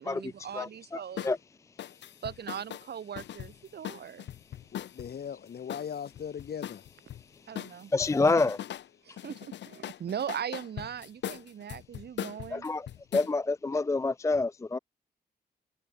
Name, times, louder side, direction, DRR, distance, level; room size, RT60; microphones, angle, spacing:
voice 1, 0.0-1.3 2.2-4.3 7.5-7.9 9.0-12.7, right 8 dB, 65° right, 2.9 m, -39 dB
voice 2, 0.5-1.4 7.9-8.6 12.5-12.8 13.1-14.8, left 3 dB, 15° left, 0.4 m, -27 dB
sound 1, 1.2-1.4 1.8-5.1 5.7-7.2 7.5-8.9 9.2-13.3, left 11 dB, 85° left, 1.1 m, -40 dB
voice 3, 4.7-6.8, left 8 dB, 65° left, 3.6 m, -39 dB
cardioid pair, 105°, 18 cm